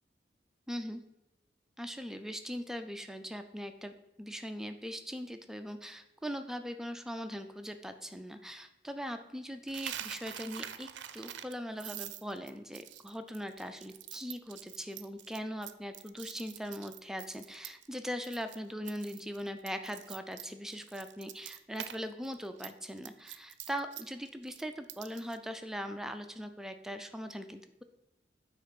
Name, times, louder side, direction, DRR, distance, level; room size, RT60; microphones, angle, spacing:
voice 1, 0.7-1.0 1.8-10.9 11.1-27.8, equal, 5° right, 7 dB, 0.3 m, -40 dB
Coin (dropping), 9.7-18.0 18.2-18.6 18.9-22.0 22.2-25.4, right 12 dB, 80° right, 0.4 m, -45 dB
8.4 x 3.2 x 5.8 m, 0.97 s
head